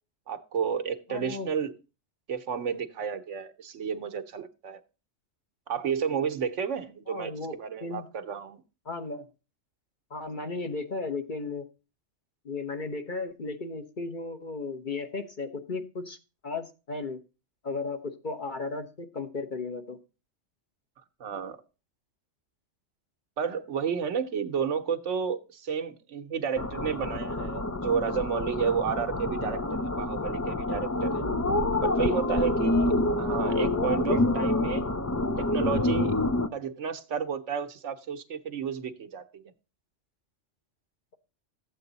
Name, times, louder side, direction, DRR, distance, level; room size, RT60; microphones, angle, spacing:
voice 1, 0.3-1.7 2.3-4.8 5.7-8.6 21.2-21.6 23.4-31.2 31.8-34.9 35.4-36.2 36.5-39.4, right 7 dB, 80° right, 1.2 m, -31 dB
voice 2, 1.1-1.5 7.1-8.0 8.8-9.3 10.1-11.6 12.4-16.2 16.4-17.2 17.6-20.0 32.1-32.3 33.4-34.3, left 3 dB, 45° left, 1.1 m, -35 dB
sound 1, 26.6-36.5, left 2 dB, 25° left, 0.3 m, -27 dB
12.5 x 8.1 x 4.0 m
omnidirectional pair, 1.2 m